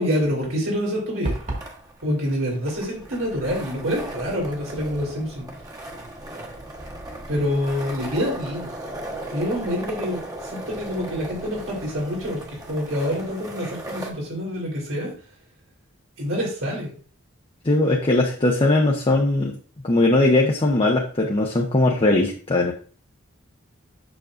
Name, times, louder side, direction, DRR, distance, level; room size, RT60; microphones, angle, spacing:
voice 1, 0.0-1.3 2.0-5.4 7.3-8.7 9.3-12.4 12.7-15.1 16.2-16.9, equal, 85° right, -3 dB, 3.5 m, -26 dB
sound 1, 1.2-1.7, right 1 dB, 40° right, 1.8 m, -28 dB
sound 2, 1.3-14.1, right 1 dB, 20° right, 1.1 m, -37 dB
voice 2, 17.6-19.5 19.8-22.7, left 2 dB, 30° left, 0 dB, 0.7 m, -19 dB
7.0 x 6.4 x 2.5 m, 0.41 s
head